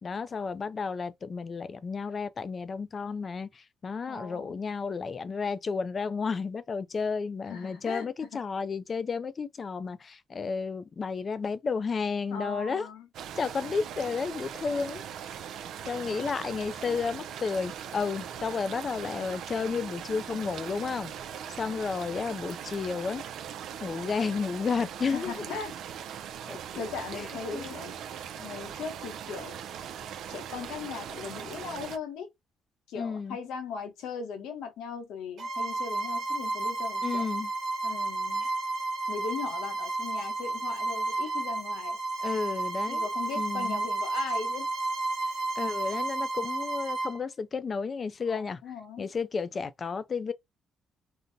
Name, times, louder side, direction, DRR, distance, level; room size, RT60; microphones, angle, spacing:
voice 1, 0.0-3.5 3.8-12.9 13.4-15.0 15.9-21.1 21.5-23.2 23.8-25.6 26.5-26.6 27.1-27.3 27.5-27.7 33.0-33.4 37.0-37.5 42.2-43.0 43.4-43.8 45.6-48.6 49.0-50.3, left 5 dB, 40° left, 0.4 m, -32 dB
voice 2, 4.1-4.6 7.4-8.4 12.3-13.1 25.1-25.7 26.8-27.9 28.4-29.6 30.3-32.3 32.9-37.3 37.8-38.5 39.1-42.0 42.9-44.7 48.3-49.1, left 6 dB, 90° left, 0.8 m, -39 dB
sound 1, 13.1-32.0, right 9 dB, 75° right, 0.4 m, -40 dB
Bowed string instrument, 35.4-47.2, right 3 dB, 60° right, 1.1 m, -32 dB
3.8 x 2.1 x 2.6 m
cardioid pair, 90°, 0 cm